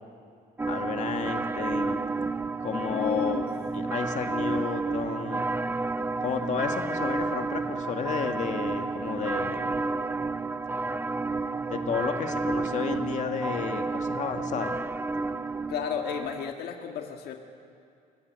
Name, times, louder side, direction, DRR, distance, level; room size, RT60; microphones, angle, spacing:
sound 1, 0.6-16.5, right 3 dB, 10° right, 0.5 m, -31 dB
voice 1, 0.7-2.0 2.6-3.4 3.7-5.4 6.2-9.9 11.7-14.8, left 6 dB, 45° left, 5 dB, 1.9 m, -32 dB
voice 2, 2.9-3.5 15.7-17.4, left 8 dB, 70° left, 3 dB, 1.7 m, -32 dB
29.5 x 17.0 x 8.3 m, 2.4 s
cardioid pair, 110°, 17 cm